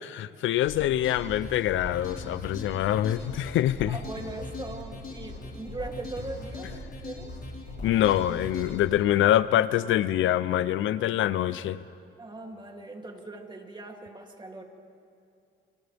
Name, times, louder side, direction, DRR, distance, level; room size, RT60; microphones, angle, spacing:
voice 1, 0.0-4.0 7.8-11.8, left 12 dB, 80° left, 16 dB, 0.6 m, -25 dB
sound 1, 0.7-8.8, left 2 dB, 50° left, 4.6 m, -39 dB
voice 2, 3.9-7.3 12.2-14.6, right 2 dB, 25° right, 1 dB, 2.9 m, -40 dB
29.5 x 27.0 x 3.5 m, 2.5 s
cardioid pair, 90°, 20 cm